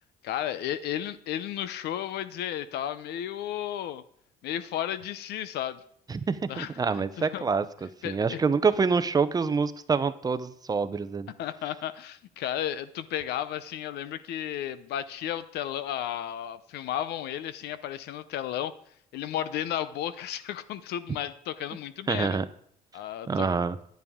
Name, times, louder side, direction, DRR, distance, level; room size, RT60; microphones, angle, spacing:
voice 1, 0.2-4.0 4.4-5.8 6.5-7.4 8.0-8.4 11.4-18.7 19.1-22.4 22.9-23.6, left 11 dB, 75° left, 14 dB, 0.7 m, -33 dB
voice 2, 6.1-11.3 22.1-22.5 23.3-23.8, right 5 dB, 25° right, 12 dB, 0.6 m, -26 dB
10.5 x 9.5 x 3.6 m, 0.67 s
cardioid pair, 110°, 17 cm